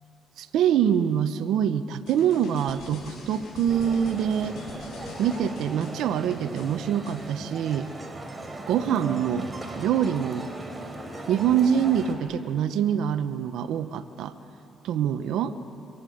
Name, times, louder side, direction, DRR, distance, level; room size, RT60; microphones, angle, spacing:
voice 1, 0.4-4.6 5.2-7.9 8.7-9.5 9.8-10.5 11.3-14.3 14.8-15.6, right 9 dB, 85° right, 11 dB, 0.9 m, -25 dB
sound 1, 2.1-7.2, left 3 dB, 80° left, 7.1 m, -43 dB
sound 2, 3.7-12.1, right 2 dB, 20° right, 3.9 m, -38 dB
27.5 x 24.5 x 7.8 m, 2.9 s
cardioid pair, 90°, 0 cm